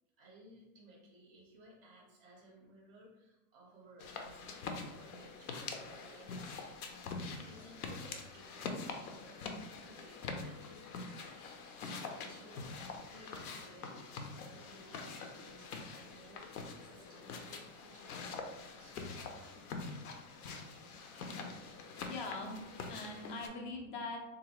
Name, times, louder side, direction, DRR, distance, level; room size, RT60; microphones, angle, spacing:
voice 1, 0.2-18.5 18.8-19.6, right 1 dB, 20° right, -3 dB, 0.5 m, -59 dB
sound 1, 4.0-23.5, left 4 dB, 75° left, 0.7 m, -45 dB
voice 2, 22.0-24.2, left 3 dB, 35° left, 2 dB, 0.5 m, -43 dB
3.8 x 2.6 x 3.0 m, 0.98 s
supercardioid pair, 170°, 45 cm